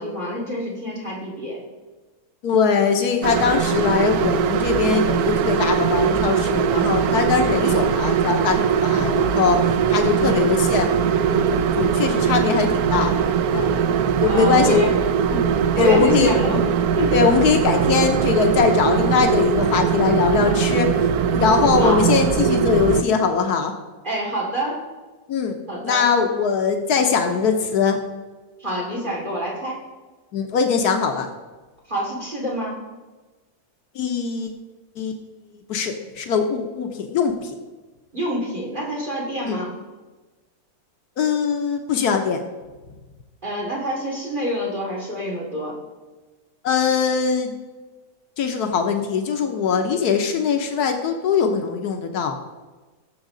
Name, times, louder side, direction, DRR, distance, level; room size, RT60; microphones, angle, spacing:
voice 1, 0.0-1.6 7.5-7.8 10.2-10.4 14.3-14.9 15.3-16.6 17.0-17.2 21.8-22.0 24.0-24.8 25.7-26.1 28.6-29.8 31.9-32.9 38.1-39.7 43.4-45.8, equal, 30° right, -4 dB, 2.8 m, -27 dB
voice 2, 2.4-13.7 14.2-14.9 15.8-16.4 17.1-23.7 25.3-28.0 30.3-31.3 33.9-34.5 35.0-35.2 35.7-37.5 39.4-39.6 41.2-42.4 46.6-47.5 48.4-52.4, left 6 dB, 90° left, 4 dB, 1.5 m, -21 dB
sound 1, 3.2-23.0, right 7 dB, 75° right, 1.1 m, -21 dB
18.0 x 7.3 x 3.9 m, 1.3 s
omnidirectional pair, 1.6 m